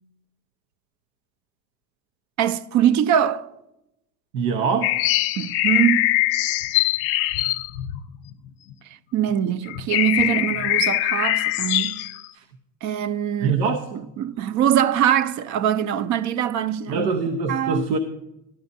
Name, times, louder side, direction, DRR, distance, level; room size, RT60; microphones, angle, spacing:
voice 1, 2.4-3.5 5.4-6.1 9.1-12.0 12.8-13.6 13.9-17.1 17.5-17.8, right 10 dB, 40° right, 0.5 m, -22 dB
voice 2, 4.3-4.9 12.4-12.5 13.4-13.8 16.9-18.0, right 5 dB, 85° right, 0.8 m, -23 dB
sound 1, 4.8-8.7 9.3-9.4 9.7-12.2, left 15 dB, 55° left, 0.7 m, -22 dB
13.0 x 12.0 x 2.7 m
hypercardioid pair, 85°, 48 cm